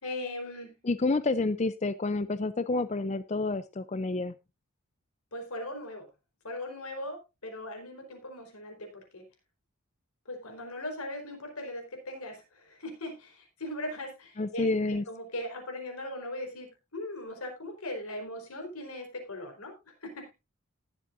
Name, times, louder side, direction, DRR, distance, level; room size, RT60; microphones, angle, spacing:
voice 1, 0.0-0.8 5.3-6.1 6.4-9.3 10.3-19.7 20.0-20.3, left 1 dB, 90° left, 3 dB, 4.3 m, -39 dB
voice 2, 0.8-4.3 14.4-15.0, left 3 dB, 30° left, 13 dB, 0.4 m, -29 dB
19.5 x 7.5 x 2.5 m, 0.25 s
head